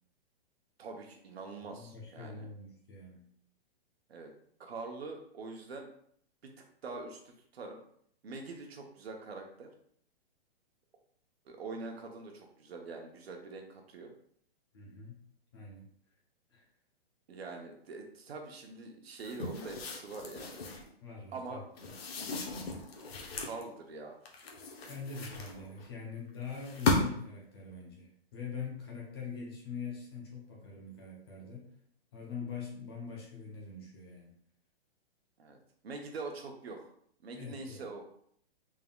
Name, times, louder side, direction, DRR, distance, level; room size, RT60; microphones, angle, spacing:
voice 1, 0.8-2.5 4.1-4.3 4.6-5.9 6.4-6.5 6.8-7.8 8.2-9.7 11.5-14.1 17.3-20.6 21.3-21.6 23.4-24.2 35.4-36.9 37.2-38.0, right 3 dB, 85° right, 2 dB, 1.0 m, -44 dB
voice 2, 1.7-3.3 14.7-15.2 15.5-15.9 16.5-16.6 21.0-21.6 24.9-31.7 32.1-34.3 37.3-37.8, left 5 dB, 25° left, -2 dB, 0.6 m, -43 dB
sound 1, 19.2-20.9 21.8-23.6 24.3-25.9 26.5-27.3, left 2 dB, 75° left, 0.9 m, -35 dB
3.7 x 3.5 x 2.3 m, 0.65 s
hypercardioid pair, 175°, 30 cm